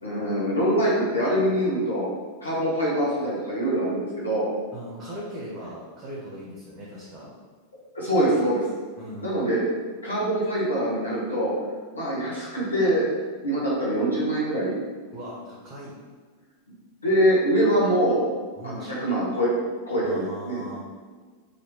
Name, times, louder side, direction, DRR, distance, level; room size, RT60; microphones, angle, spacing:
voice 1, 0.0-2.1 2.4-4.5 7.9-8.6 9.2-9.6 10.0-11.5 11.9-13.0 13.4-14.7 17.0-18.2 18.6-19.5 19.9-20.6, right 1 dB, 80° left, -6 dB, 1.1 m, -24 dB
voice 2, 4.7-7.3 9.0-9.5 15.1-15.9 18.6-19.1 20.0-20.8, equal, 25° right, -5 dB, 0.9 m, -39 dB
3.1 x 2.7 x 4.5 m, 1.5 s
figure-of-eight pair, 90°, 0 cm